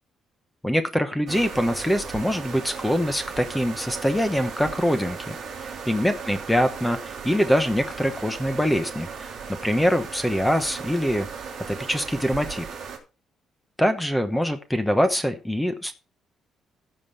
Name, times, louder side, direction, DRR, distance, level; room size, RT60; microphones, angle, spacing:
voice 1, 0.6-9.4 9.6-11.3 11.7-12.6 13.8-16.0, equal, 5° left, 9 dB, 1.0 m, -24 dB
sound 1, 1.3-13.0, right 6 dB, 40° right, 4.1 m, -37 dB
15.5 x 5.4 x 5.4 m, 0.31 s
cardioid pair, 175°, 0 cm